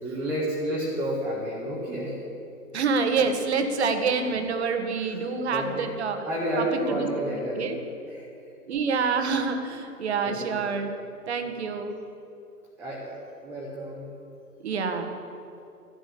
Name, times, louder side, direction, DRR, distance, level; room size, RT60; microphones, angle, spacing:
voice 1, 0.0-2.2 5.0-5.9 6.2-7.7 8.1-8.2 10.2-10.4 12.8-14.1, equal, 5° right, -7 dB, 1.6 m, -30 dB
voice 2, 2.7-6.2 6.6-7.8 8.7-10.9 11.3-11.9 14.6-15.1, right 5 dB, 45° right, 7 dB, 1.7 m, -27 dB
12.5 x 12.0 x 8.6 m, 2.7 s
figure-of-eight pair, 135°, 47 cm